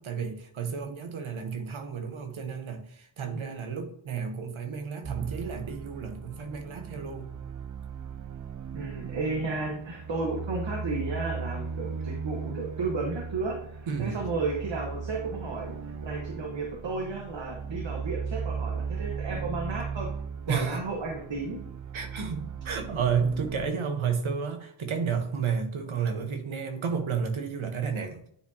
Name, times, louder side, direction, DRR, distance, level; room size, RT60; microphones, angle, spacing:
voice 1, 0.0-7.3 13.9-14.2 20.5-20.8 21.9-28.2, right 6 dB, 85° right, 6 dB, 1.2 m, -31 dB
sound 1, 5.0-23.7, right 5 dB, 40° right, 0.5 m, -37 dB
voice 2, 8.7-15.8 16.0-20.1 20.5-21.6, right 3 dB, 65° right, -1 dB, 1.3 m, -33 dB
10.0 x 4.6 x 2.8 m, 0.67 s
wide cardioid pair, 115°, 47 cm